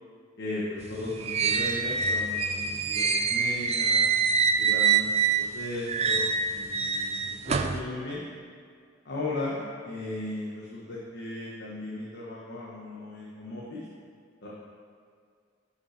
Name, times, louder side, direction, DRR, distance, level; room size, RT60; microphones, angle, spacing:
voice 1, 0.4-4.0 4.6-7.2 7.4-8.2 9.0-13.8 14.4-14.5, left 2 dB, 60° left, -7 dB, 1.2 m, -36 dB
sound 1, 0.8-5.6 5.9-7.8, right 5 dB, 35° right, 0.4 m, -26 dB
11.5 x 5.6 x 3.3 m, 2.1 s
head